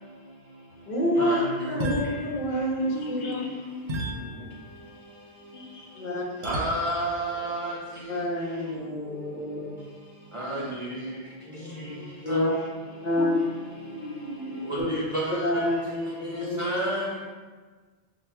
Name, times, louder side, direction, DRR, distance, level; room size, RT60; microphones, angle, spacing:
voice 1, 0.9-3.3 5.9-6.2 8.1-9.7 11.5-12.0 12.2-12.5 13.0-13.4 14.8-14.9 15.4-16.8, left 1 dB, 45° left, -4 dB, 0.8 m, -28 dB
sound 1, 1.8-3.1 3.9-5.1 6.4-7.2, right 1 dB, 90° right, 0.9 m, -35 dB
voice 2, 2.9-4.6 5.5-5.9 13.2-13.3 13.7-14.7 16.3-16.5, left 2 dB, 85° left, 1 dB, 0.8 m, -37 dB
voice 3, 6.4-7.8 10.3-10.6 12.3-12.4 14.7-15.5 16.6-17.0, right 1 dB, 40° right, -6 dB, 0.5 m, -29 dB
5.6 x 2.3 x 2.2 m, 1.4 s
omnidirectional pair, 1.1 m